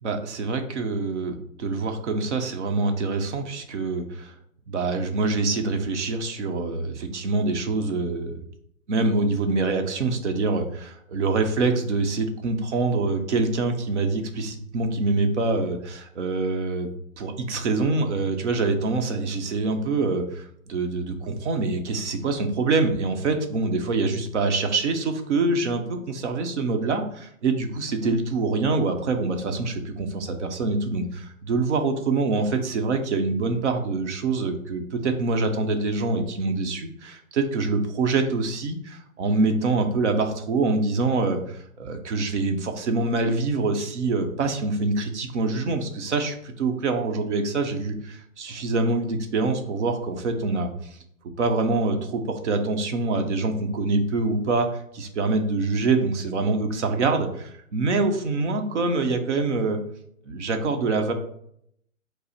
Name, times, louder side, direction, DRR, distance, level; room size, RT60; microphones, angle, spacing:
voice 1, 0.0-4.3 4.7-8.4 8.9-16.9 17.2-50.7 51.4-54.7 54.9-59.8 60.3-61.1, right 3 dB, 55° right, 5 dB, 0.9 m, -25 dB
5.3 x 2.1 x 4.1 m, 0.70 s
hypercardioid pair, 155°, 42 cm